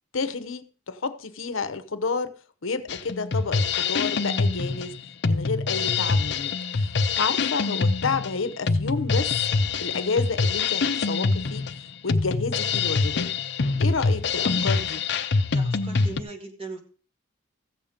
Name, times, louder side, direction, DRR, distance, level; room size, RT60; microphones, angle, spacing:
voice 1, 0.1-2.3 2.6-4.9 5.3-9.3 9.8-13.3 13.8-15.0, left 4 dB, 85° left, 0.9 m, -30 dB
Drum kit, 2.9-16.2, left 4 dB, 55° left, 0.6 m, -25 dB
voice 2, 15.5-16.8, right 3 dB, 30° right, 2.2 m, -38 dB
15.0 x 7.3 x 5.1 m
head